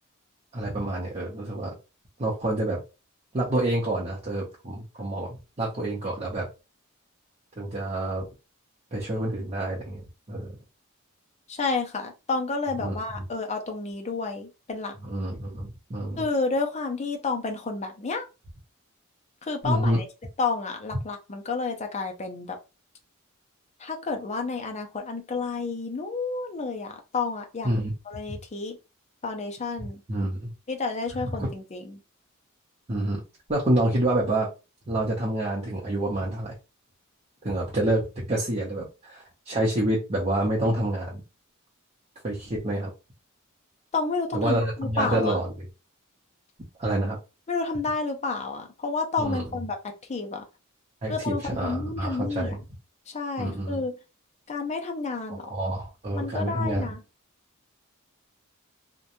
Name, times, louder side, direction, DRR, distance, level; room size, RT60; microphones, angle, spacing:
voice 1, 0.5-1.7 2.2-2.8 3.3-6.5 7.6-8.3 8.9-10.5 12.8-13.2 15.0-16.2 19.6-20.0 27.6-27.9 28.3-28.4 29.8-30.5 31.2-31.5 32.9-33.2 33.5-34.5 34.9-36.6 37.4-41.2 42.2-42.9 44.3-45.7 46.8-47.2 49.2-49.6 51.0-52.6 53.4-53.8 55.3-56.9, right 1 dB, 30° right, 0.7 m, -28 dB
voice 2, 11.5-14.9 16.2-18.3 19.4-20.0 20.4-22.6 23.8-27.7 28.1-28.8 29.2-30.0 30.7-32.0 43.9-45.4 47.5-50.4 51.1-52.6 53.1-53.9 54.5-55.5 56.1-57.0, left 4 dB, 30° left, 0.5 m, -30 dB
2.9 x 2.2 x 2.5 m
head